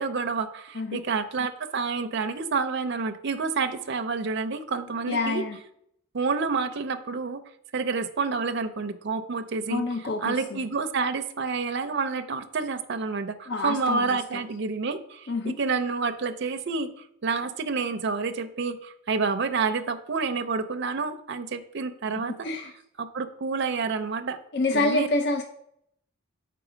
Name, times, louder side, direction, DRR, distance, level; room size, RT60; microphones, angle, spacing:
voice 1, 0.0-5.4 6.1-7.4 7.7-9.8 10.2-16.9 17.2-22.5 23.0-24.4 24.7-25.1, right 4 dB, 55° right, 9 dB, 0.5 m, -29 dB
voice 2, 5.1-5.6 9.7-10.6 13.5-14.1 15.3-15.5 22.2-22.7 24.5-25.4, left 2 dB, 50° left, 4 dB, 0.5 m, -27 dB
6.0 x 4.7 x 4.9 m, 0.71 s
head